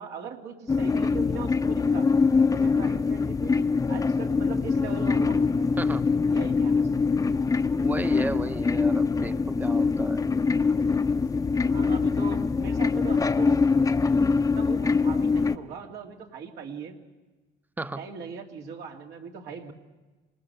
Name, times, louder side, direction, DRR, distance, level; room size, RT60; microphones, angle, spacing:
voice 1, 0.0-2.1 2.5-5.7 6.3-6.9 11.6-13.6 14.6-17.0 18.0-19.7, right 6 dB, 75° right, 1 dB, 2.7 m, -40 dB
sound 1, 0.7-15.6, left 4 dB, 20° left, 0.8 m, -24 dB
voice 2, 5.8-6.2 7.8-10.2 17.8-18.1, right 2 dB, 10° right, 11 dB, 0.9 m, -34 dB
26.5 x 19.0 x 6.9 m, 1.2 s
cardioid pair, 110°, 17 cm